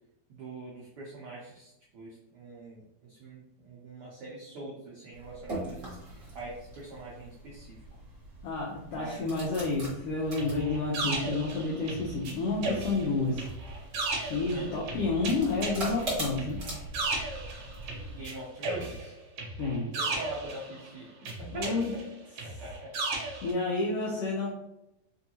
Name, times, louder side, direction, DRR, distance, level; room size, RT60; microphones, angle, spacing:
voice 1, 0.3-7.8 8.9-9.3 14.5-14.7 18.1-19.1 20.0-21.1 21.4-22.0 22.4-23.0, right 2 dB, 85° right, -4 dB, 1.2 m, -43 dB
sound 1, 5.1-18.2, right 1 dB, 45° right, 1.0 m, -42 dB
voice 2, 8.4-13.5 14.2-16.6 19.6-19.9 21.5-21.9 23.4-24.5, left 3 dB, 85° left, -3 dB, 1.4 m, -30 dB
sound 2, 10.4-12.3 12.6-18.3 18.6-20.9 21.3-23.5, right 3 dB, 65° right, 1.6 m, -35 dB
4.9 x 2.7 x 2.8 m, 0.85 s
omnidirectional pair, 3.6 m